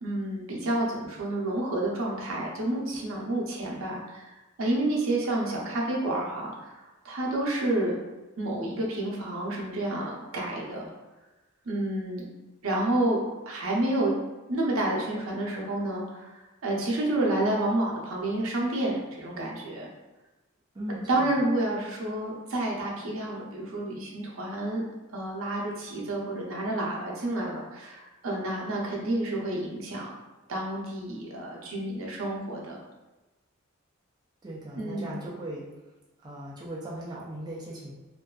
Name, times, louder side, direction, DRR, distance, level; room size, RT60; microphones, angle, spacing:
voice 1, 0.0-4.3 4.6-6.8 7.0-7.9 8.4-10.9 11.7-12.2 12.6-13.2 13.5-14.1 14.5-16.3 16.6-19.9 21.1-24.8 25.1-30.1 30.5-32.8 34.8-35.1, right 1 dB, 80° right, -2 dB, 0.6 m, -29 dB
voice 2, 20.7-21.3 34.4-35.7 36.2-37.9, right 1 dB, 20° right, -5 dB, 0.4 m, -38 dB
2.6 x 2.3 x 2.2 m, 1.1 s
head